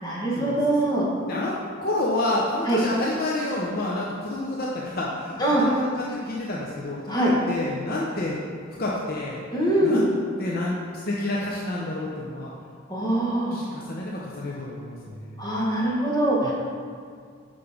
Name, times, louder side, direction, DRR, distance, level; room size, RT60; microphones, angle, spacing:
voice 1, 0.0-1.0 2.7-2.8 5.4-5.6 7.1-7.3 9.5-10.0 12.9-13.6 15.4-16.5, right 1 dB, 20° left, -6 dB, 1.7 m, -23 dB
voice 2, 1.8-8.4 8.8-9.4 9.8-10.0 10.4-10.7 11.1-12.5 13.5-15.5 16.4-16.5, left 1 dB, 50° left, -4 dB, 0.8 m, -29 dB
6.9 x 5.5 x 5.2 m, 2.1 s
head